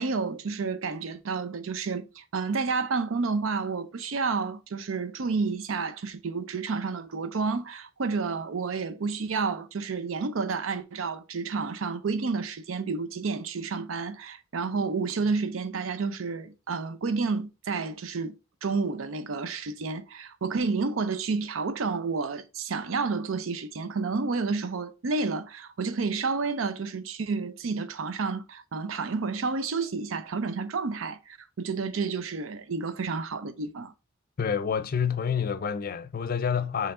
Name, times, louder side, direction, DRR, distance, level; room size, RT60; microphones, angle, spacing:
voice 1, 0.0-33.9, right 4 dB, 85° right, 0.6 m, -30 dB
voice 2, 34.4-36.9, left 7 dB, 45° left, 0.4 m, -28 dB
4.6 x 3.2 x 3.6 m
head